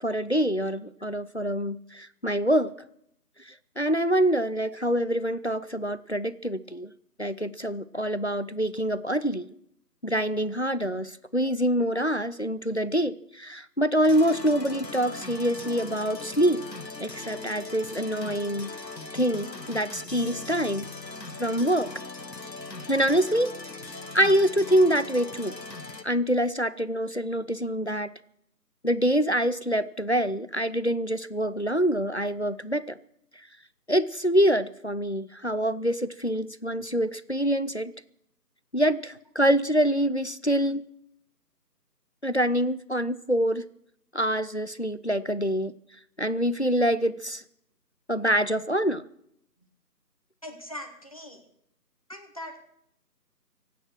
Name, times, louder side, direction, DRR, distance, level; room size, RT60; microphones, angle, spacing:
voice 1, 0.0-2.7 3.8-6.9 7.2-9.5 10.0-16.6 17.0-18.7 19.1-20.8 21.4-21.9 22.9-23.5 24.1-25.5 26.0-28.1 28.8-33.0 33.9-37.9 38.7-40.8 42.2-43.6 44.1-45.7 46.2-47.4 48.1-49.1, equal, 45° left, 16 dB, 0.5 m, -25 dB
sound 1, 14.0-26.0, left 3 dB, 85° left, 1.5 m, -40 dB
voice 2, 50.4-51.5 52.1-52.6, left 1 dB, 20° left, 3 dB, 1.2 m, -40 dB
23.0 x 9.2 x 6.1 m, 0.73 s
figure-of-eight pair, 165°, 49 cm